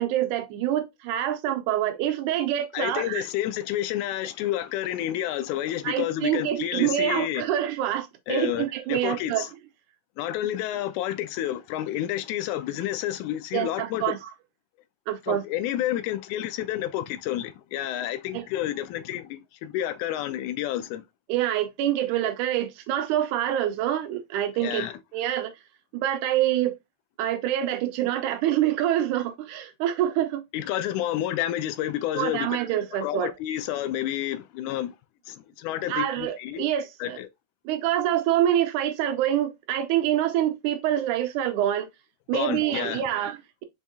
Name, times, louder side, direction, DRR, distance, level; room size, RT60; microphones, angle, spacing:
voice 1, 0.0-3.3 5.8-9.5 13.5-14.3 15.1-15.4 18.3-18.4 21.3-24.8 25.1-25.5 25.9-26.8 27.2-30.4 32.1-33.3 35.9-37.2 37.7-41.9 42.3-43.6, right 11 dB, 85° right, 2.3 m, -26 dB
voice 2, 2.7-7.4 8.3-9.5 10.2-14.2 15.2-21.0 24.6-25.0 30.5-32.6 33.0-34.9 35.3-36.7 37.0-37.3 42.3-43.0, left 12 dB, 85° left, 2.0 m, -30 dB
5.4 x 3.5 x 2.7 m
omnidirectional pair, 3.4 m